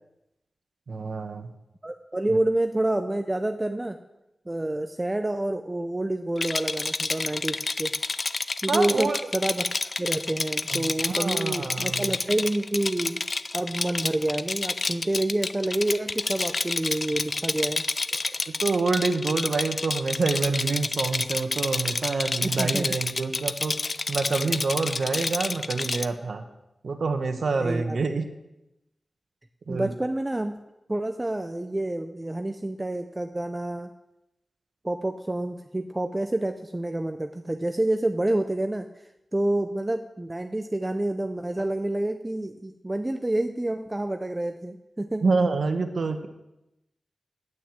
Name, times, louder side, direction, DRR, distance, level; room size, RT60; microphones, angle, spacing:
voice 1, 0.9-1.5 2.3-2.4 8.7-9.2 10.7-12.1 18.5-23.7 24.1-26.4 26.8-28.2 29.7-29.9 45.2-46.3, right 4 dB, 70° right, 6 dB, 1.1 m, -27 dB
voice 2, 1.8-4.0 4.5-7.9 8.6-9.6 10.0-13.2 13.5-17.8 22.4-23.0 27.5-28.0 29.7-30.6 30.9-33.9 34.8-38.8 39.3-45.2, right 1 dB, 15° right, 6 dB, 0.6 m, -28 dB
Rattle, 6.4-26.1, left 3 dB, 45° left, 0.5 m, -29 dB
9.4 x 9.0 x 7.6 m, 0.91 s
wide cardioid pair, 120°, 0 cm